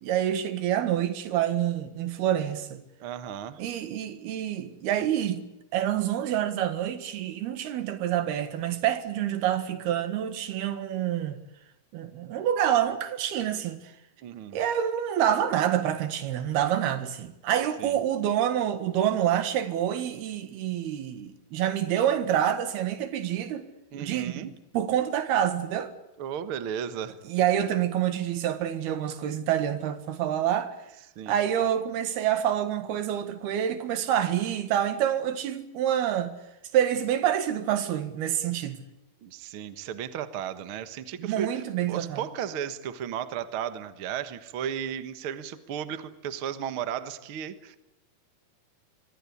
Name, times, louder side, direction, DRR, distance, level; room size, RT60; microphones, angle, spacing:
voice 1, 0.0-2.8 3.6-5.4 5.7-11.4 11.9-13.8 14.5-23.7 24.0-24.5 24.7-25.9 27.3-30.8 31.3-36.4 36.7-38.8 41.2-42.2, right 10 dB, 85° right, 3.7 m, -27 dB
voice 2, 3.0-3.6 14.2-14.6 17.8-18.0 23.9-24.5 26.2-27.2 31.1-31.4 39.2-47.8, right 9 dB, 55° right, 1.5 m, -35 dB
25.0 x 22.5 x 8.5 m
omnidirectional pair, 4.4 m